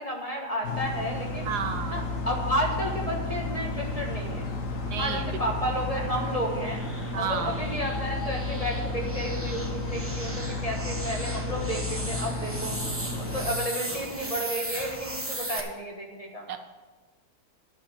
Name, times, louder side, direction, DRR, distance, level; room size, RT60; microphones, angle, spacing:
voice 1, 0.0-1.4 1.9-4.5 5.0-6.8 7.2-12.8 13.2-16.5, equal, 25° left, 0 dB, 1.4 m, -32 dB
sound 1, 0.6-13.5, left 2 dB, 55° left, 1.5 m, -32 dB
voice 2, 1.4-2.1 4.9-5.3 7.1-7.6 16.5-16.6, right 7 dB, 75° right, 7 dB, 1.4 m, -31 dB
sound 2, 4.2-15.6, right 1 dB, 10° right, 0.9 m, -38 dB
10.5 x 5.7 x 8.7 m, 1.3 s
omnidirectional pair, 1.8 m